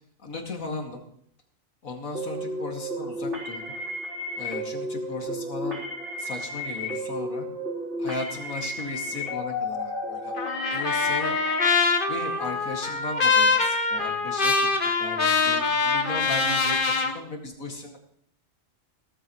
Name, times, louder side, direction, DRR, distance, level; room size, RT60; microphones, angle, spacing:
voice 1, 0.2-1.0 1.8-3.8 4.4-5.8 6.2-7.5 8.0-10.4 10.7-11.4 12.1-14.7 15.0-18.0, left 3 dB, 80° left, 2 dB, 2.6 m, -36 dB
sound 1, 2.1-11.7, left 1 dB, 55° right, 4.0 m, -32 dB
Trumpet, 10.4-17.1, left 4 dB, 40° left, 1.4 m, -24 dB
17.5 x 14.0 x 3.1 m, 0.68 s
omnidirectional pair, 1.4 m